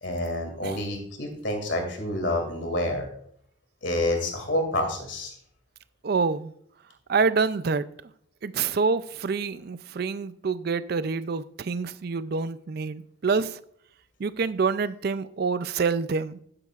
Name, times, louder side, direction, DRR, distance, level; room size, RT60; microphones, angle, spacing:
voice 1, 0.0-3.0 3.8-5.3, left 1 dB, 60° left, 2.4 m, -28 dB
voice 2, 6.0-6.5 7.1-7.9 8.4-13.6 14.2-16.4, right 4 dB, 50° right, 0.4 m, -27 dB
11.5 x 9.8 x 2.4 m
head